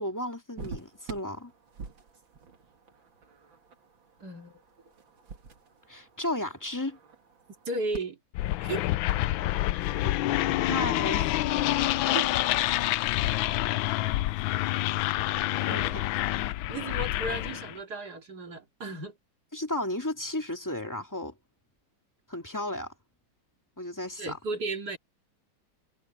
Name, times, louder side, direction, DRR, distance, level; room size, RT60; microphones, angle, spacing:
voice 1, 0.0-1.5 5.9-7.0 9.7-9.8 10.7-11.3 15.7-16.0 19.5-21.3 22.3-22.9 23.8-24.4, left 1 dB, 10° left, 2.2 m, -33 dB
sound 1, 0.6-8.0, right 5 dB, 75° right, 2.9 m, -47 dB
voice 2, 4.2-4.6 7.7-8.2 8.6-8.9 10.0-10.2 12.1-12.5 13.3-13.4 15.7-16.0 16.7-19.2 24.2-25.0, right 2 dB, 55° right, 3.0 m, -35 dB
sound 2, 8.3-17.7, left 15 dB, 85° left, 1.4 m, -27 dB
omnidirectional pair, 2.1 m